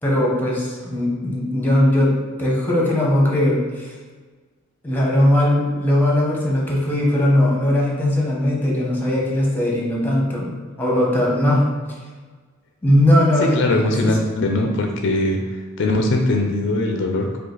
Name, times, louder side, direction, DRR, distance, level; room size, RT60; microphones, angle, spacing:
voice 1, 0.0-3.9 4.8-11.7 12.8-14.2, left 1 dB, 10° left, -4 dB, 1.0 m, -19 dB
voice 2, 13.4-15.4 15.8-17.4, left 2 dB, 60° left, 3 dB, 0.4 m, -20 dB
4.8 x 2.4 x 3.9 m, 1.4 s
head